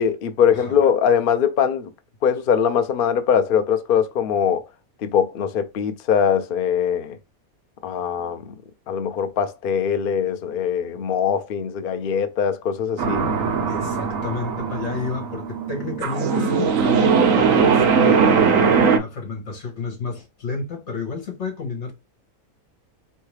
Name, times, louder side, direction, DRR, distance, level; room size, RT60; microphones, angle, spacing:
voice 1, 0.0-1.9 2.2-4.6 5.0-7.2 7.8-8.5 8.9-13.2, left 7 dB, 75° left, 0.5 m, -21 dB
sound 1, 13.0-19.0, right 5 dB, 70° right, 1.1 m, -19 dB
voice 2, 13.7-21.9, left 4 dB, 50° left, 1.6 m, -31 dB
4.5 x 3.2 x 3.2 m
omnidirectional pair, 1.5 m